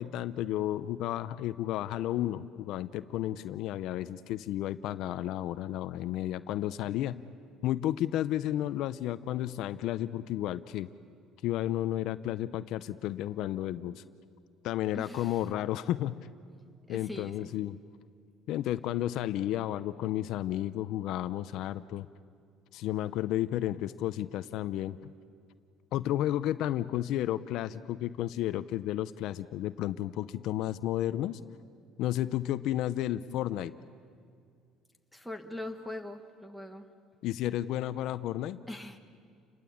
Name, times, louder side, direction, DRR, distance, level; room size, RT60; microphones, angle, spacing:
voice 1, 0.0-7.2 7.6-10.9 11.4-14.0 14.6-16.1 16.9-17.8 18.5-22.1 22.7-25.1 25.9-31.4 32.0-33.7 37.2-38.6, left 13 dB, 65° left, 13 dB, 0.7 m, -32 dB
voice 2, 14.9-15.4 16.9-17.5 35.1-36.9 38.7-39.0, left 1 dB, ahead, 3 dB, 1.6 m, -42 dB
30.0 x 21.5 x 8.7 m, 2.2 s
cardioid pair, 135°, 0 cm